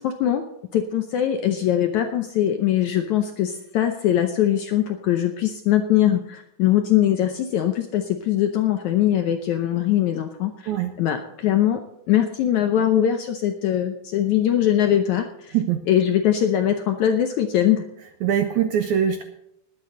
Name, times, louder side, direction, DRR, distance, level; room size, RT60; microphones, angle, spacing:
voice 1, 0.0-0.4 0.7-10.7 11.0-11.8 12.1-15.6 15.9-17.9, left 11 dB, 75° left, 6 dB, 1.8 m, -21 dB
voice 2, 18.2-19.2, right 9 dB, 80° right, 7 dB, 1.8 m, -22 dB
20.5 x 8.6 x 3.9 m, 0.79 s
omnidirectional pair, 4.3 m